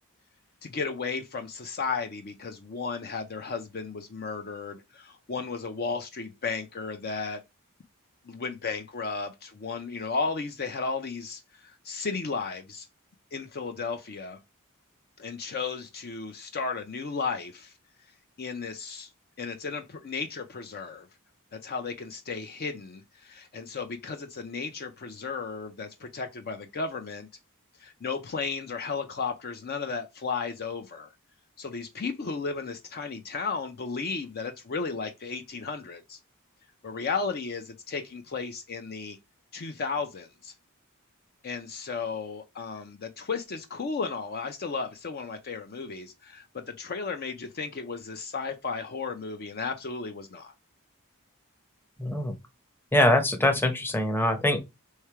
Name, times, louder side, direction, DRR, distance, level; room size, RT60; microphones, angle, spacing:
voice 1, 0.6-7.4 8.2-12.9 13.3-14.4 15.2-17.7 18.4-19.1 19.4-21.1 21.6-27.3 27.8-31.1 31.6-36.2 36.8-39.2 39.5-40.5 41.4-50.5, left 4 dB, 45° left, 0.5 m, -34 dB
voice 2, 52.0-52.4 52.9-54.6, left 1 dB, 10° left, 0.8 m, -23 dB
3.2 x 3.2 x 4.7 m
head